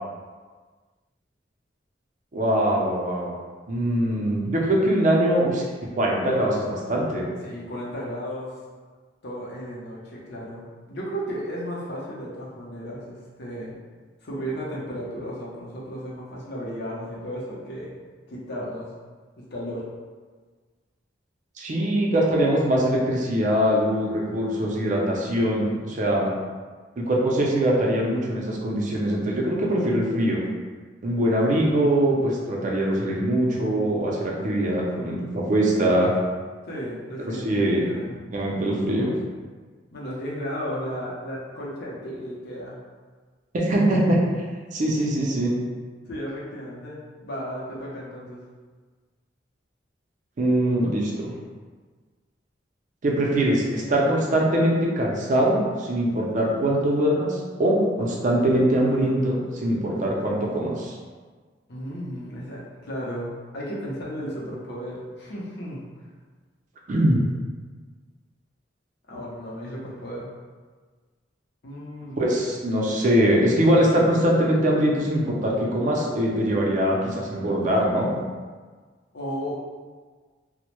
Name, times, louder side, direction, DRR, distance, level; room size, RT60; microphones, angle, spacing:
voice 1, 2.3-3.3 3.7-5.6 5.9-7.3 21.6-26.3 27.0-30.4 31.0-36.1 37.2-37.9 38.3-39.1 43.5-45.5 50.4-51.3 53.0-61.0 66.9-67.2 72.2-78.2, right 1 dB, 45° right, -2 dB, 0.4 m, -22 dB
voice 2, 7.4-8.5 9.2-13.7 14.2-17.9 18.3-18.9 19.4-19.9 36.7-38.1 39.9-42.8 46.1-48.4 61.7-65.8 69.1-70.3 71.6-72.3 79.1-79.5, equal, 65° left, -5 dB, 0.6 m, -34 dB
2.1 x 2.0 x 2.9 m, 1.5 s
head